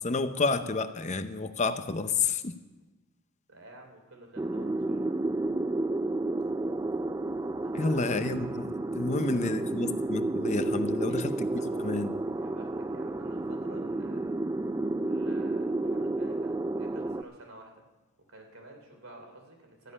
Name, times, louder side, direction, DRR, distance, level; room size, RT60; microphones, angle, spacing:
voice 1, 0.0-2.6 7.7-11.5 11.8-12.1, left 3 dB, 35° left, 10 dB, 0.7 m, -30 dB
voice 2, 3.5-5.2 7.6-8.3 9.0-9.6 11.1-12.0 12.3-14.3 15.0-17.9 18.3-19.9, right 2 dB, 75° right, 3 dB, 3.1 m, -50 dB
sound 1, 4.4-17.2, right 2 dB, 15° right, 0.3 m, -31 dB
13.0 x 7.3 x 9.8 m, 1.1 s
head